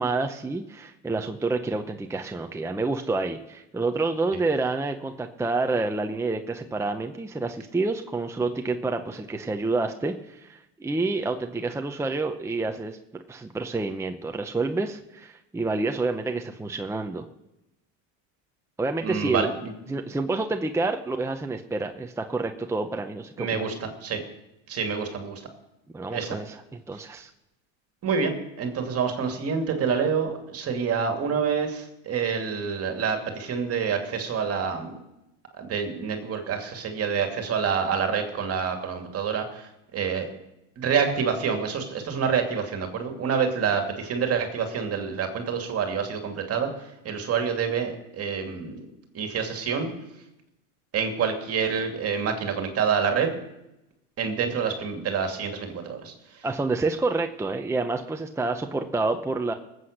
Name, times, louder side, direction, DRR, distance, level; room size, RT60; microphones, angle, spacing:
voice 1, 0.0-17.2 18.8-19.5 19.9-23.7 25.9-26.6 26.9-27.3 56.4-59.5, right 3 dB, 5° right, 5 dB, 0.8 m, -28 dB
voice 2, 19.0-19.7 23.4-24.2 24.7-25.4 26.1-26.4 28.0-34.9 35.5-40.3 40.8-48.8 49.1-49.9 50.9-53.3 54.2-56.5, right 6 dB, 40° right, 5 dB, 2.5 m, -27 dB
19.5 x 8.0 x 6.5 m, 0.90 s
supercardioid pair, 120°, 37 cm